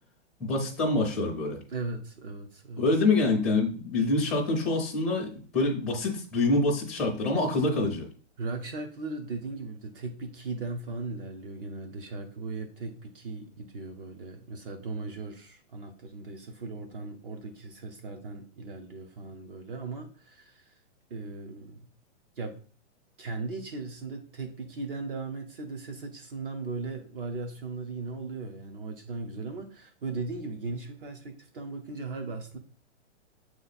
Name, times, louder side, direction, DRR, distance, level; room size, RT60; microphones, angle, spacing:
voice 1, 0.4-1.6 2.8-8.1, left 2 dB, ahead, -3 dB, 0.5 m, -26 dB
voice 2, 1.7-2.9 8.4-20.7 21.1-21.9 22.4-22.5 23.2-32.6, right 3 dB, 50° right, 5 dB, 0.9 m, -38 dB
7.9 x 3.1 x 4.0 m, 0.41 s
hypercardioid pair, 165°, 36 cm